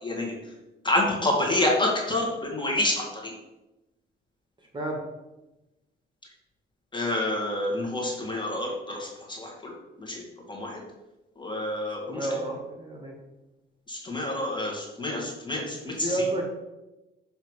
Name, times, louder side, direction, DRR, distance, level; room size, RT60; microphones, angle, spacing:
voice 1, 0.0-0.3 0.8-3.3 6.9-9.7 10.0-10.8 11.4-12.3 13.9-16.2, left 1 dB, 25° left, -2 dB, 1.8 m, -28 dB
voice 2, 12.1-13.1 16.0-16.5, right 1 dB, 25° right, 0 dB, 1.6 m, -30 dB
7.0 x 3.2 x 4.7 m, 1.0 s
cardioid pair, 90°, 20 cm